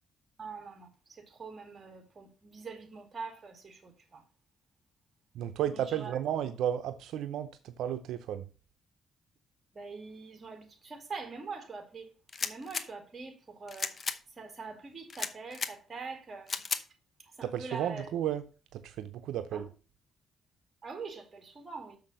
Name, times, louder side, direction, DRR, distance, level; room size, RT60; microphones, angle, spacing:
voice 1, 0.4-4.2 5.7-6.1 9.7-12.1 12.4-13.3 13.6-13.9 14.4-16.5 17.4-18.1 19.5-19.7 20.8-22.0, right 4 dB, 35° right, 2.3 m, -44 dB
voice 2, 5.3-8.5 17.4-19.7, right 10 dB, 85° right, 0.6 m, -33 dB
sound 1, 12.3-12.9 13.7-14.2 15.1-15.7 16.5-16.8, left 5 dB, 40° left, 0.8 m, -34 dB
6.9 x 5.9 x 5.5 m
cardioid pair, 90°, 0 cm